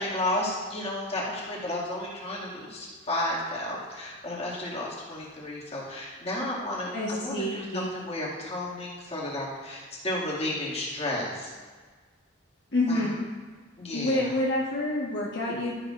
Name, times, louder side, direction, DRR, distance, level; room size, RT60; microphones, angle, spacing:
voice 1, 0.0-11.5 12.9-13.1 13.8-14.3, left 1 dB, 35° left, -6 dB, 2.2 m, -32 dB
voice 2, 6.9-7.9 12.7-13.1 13.9-15.8, left 1 dB, 60° left, -6 dB, 1.3 m, -28 dB
12.5 x 10.0 x 2.5 m, 1.5 s
head